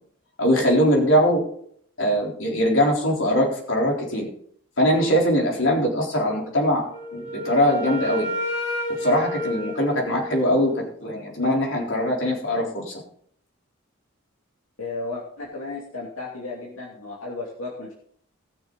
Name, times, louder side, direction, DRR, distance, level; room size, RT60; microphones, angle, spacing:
voice 1, 0.4-1.4 2.0-4.3 4.8-8.3 9.0-13.0, equal, 65° left, -1 dB, 3.9 m, -21 dB
Wind instrument woodwind instrument, 6.9-10.8, left 1 dB, 30° left, 3.1 m, -31 dB
voice 2, 14.8-17.9, left 3 dB, 85° left, -4 dB, 2.7 m, -34 dB
20.0 x 6.6 x 4.0 m, 0.63 s
head